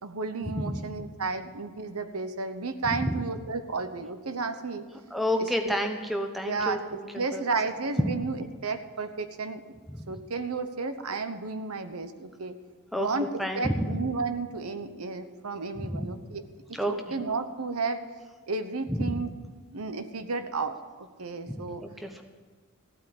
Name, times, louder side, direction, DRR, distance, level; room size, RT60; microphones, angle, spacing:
voice 1, 0.0-4.9 5.4-5.7 6.4-9.6 10.1-12.6 12.9-16.4 16.9-18.0 18.5-19.3 19.7-21.8, right 4 dB, 85° right, 9 dB, 1.0 m, -32 dB
voice 2, 0.6-0.9 2.9-3.1 5.1-7.0 7.3-7.4 12.9-13.1 13.4-13.9 15.7-16.0 16.7-16.9 18.9-19.0 21.5-22.2, equal, ahead, 4 dB, 1.0 m, -30 dB
15.0 x 8.8 x 7.7 m, 1.4 s
head